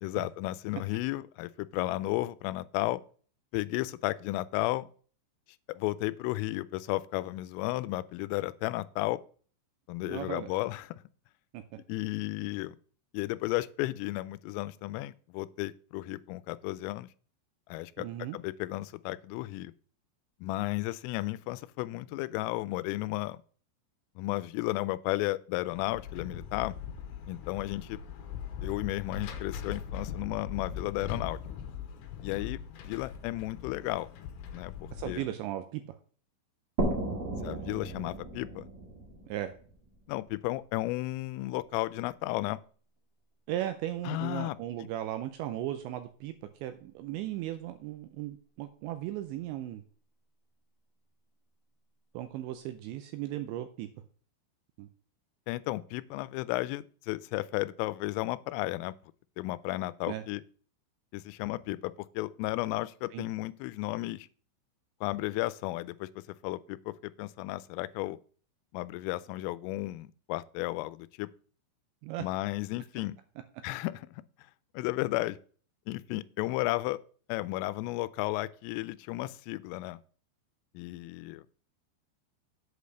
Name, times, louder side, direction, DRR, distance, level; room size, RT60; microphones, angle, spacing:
voice 1, 0.0-3.0 3.5-4.9 5.7-9.2 9.9-11.0 11.9-12.8 13.1-17.1 17.7-18.1 18.3-19.7 20.4-23.4 24.2-26.7 27.3-28.0 28.6-31.4 32.2-32.6 32.8-34.1 34.5-35.2 37.4-38.7 40.1-42.6 44.1-44.6 55.5-58.9 59.4-60.4 61.1-64.3 65.0-66.1 66.4-68.2 68.7-71.3 72.2-73.2 73.6-74.2 74.7-75.4 75.9-77.0 77.3-80.0 80.7-81.4, left 18 dB, 90° left, 3.2 m, -33 dB
voice 2, 10.1-10.5 11.5-11.6 18.0-18.4 34.9-35.8 39.3-39.5 43.5-46.3 46.6-49.8 52.1-53.9 54.8-54.9 60.1-60.2 63.1-63.3 72.0-72.2, right 13 dB, 80° right, 2.6 m, -36 dB
sound 1, 25.7-35.2, left 8 dB, 70° left, 3.0 m, -40 dB
sound 2, 36.8-40.3, right 2 dB, 55° right, 1.5 m, -35 dB
8.3 x 5.1 x 6.6 m
omnidirectional pair, 5.7 m